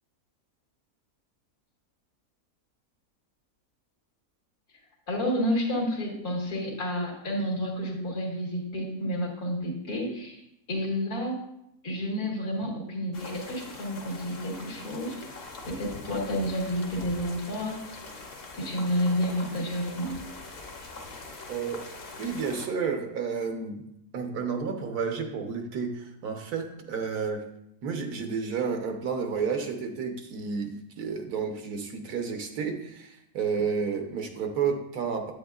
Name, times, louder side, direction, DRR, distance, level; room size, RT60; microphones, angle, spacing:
voice 1, 5.1-10.4 10.7-11.4 11.8-15.2 15.7-17.8 18.5-20.2, equal, 80° left, -2 dB, 2.3 m, -30 dB
sound 1, 13.1-22.7, left 3 dB, 45° left, 1.0 m, -43 dB
voice 2, 21.5-21.8 22.2-23.8 24.1-27.4 27.8-35.3, right 5 dB, 80° right, 4 dB, 1.5 m, -31 dB
9.2 x 8.6 x 2.4 m, 0.80 s
omnidirectional pair, 1.6 m